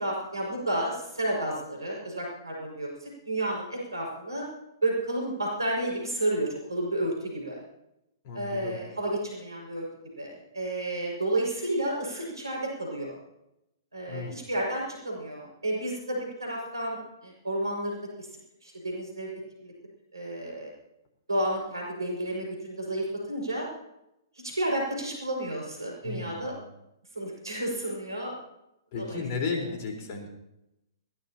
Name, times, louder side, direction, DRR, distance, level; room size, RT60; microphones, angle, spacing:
voice 1, 0.0-4.5 4.8-7.6 8.3-9.9 10.2-13.2 13.9-18.3 18.6-19.3 19.6-19.7 20.1-20.7 21.3-23.7 24.4-26.5 27.1-28.3 29.0-29.2, right 1 dB, 85° right, -1 dB, 5.9 m, -31 dB
voice 2, 8.2-8.8 14.1-14.3 26.0-26.6 28.9-30.3, left 4 dB, 40° left, 1 dB, 4.3 m, -34 dB
21.0 x 17.5 x 2.9 m, 0.87 s
figure-of-eight pair, 120°, 2 cm